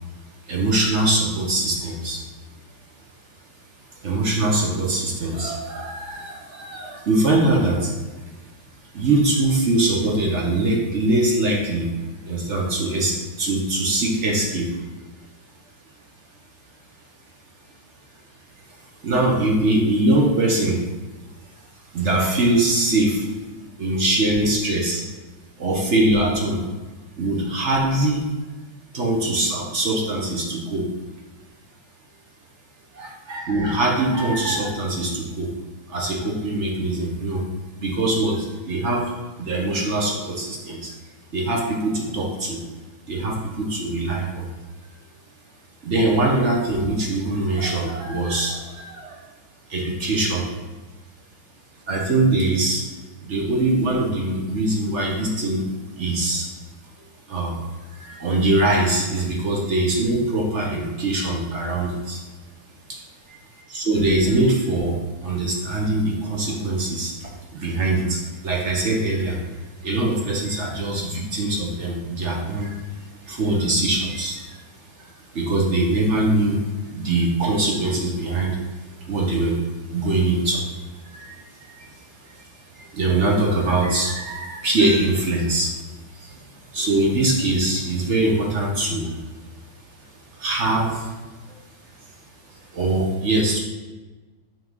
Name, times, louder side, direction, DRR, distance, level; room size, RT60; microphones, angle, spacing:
voice 1, 0.5-2.2 4.0-7.9 8.9-11.9 12.2-14.7 19.0-20.8 21.9-23.3 23.8-25.0 25.6-26.6 27.2-28.2 28.9-30.9 32.9-35.5 35.9-37.4 37.8-39.1 39.4-40.9 41.3-42.6 43.1-44.5 45.8-49.2 49.7-50.5 51.9-52.8 53.2-55.6 56.0-56.5 57.3-57.6 57.9-62.2 62.9-63.0 63.3-63.4 63.7-74.6 74.9-78.6 79.0-79.6 79.9-80.7 81.0-81.4 81.7-81.9 82.2-85.7 86.1-89.2 90.3-91.2 91.5-91.6 92.7-93.6, right 2 dB, 50° right, -1 dB, 1.0 m, -22 dB
5.9 x 3.6 x 5.4 m, 1.3 s
omnidirectional pair, 2.1 m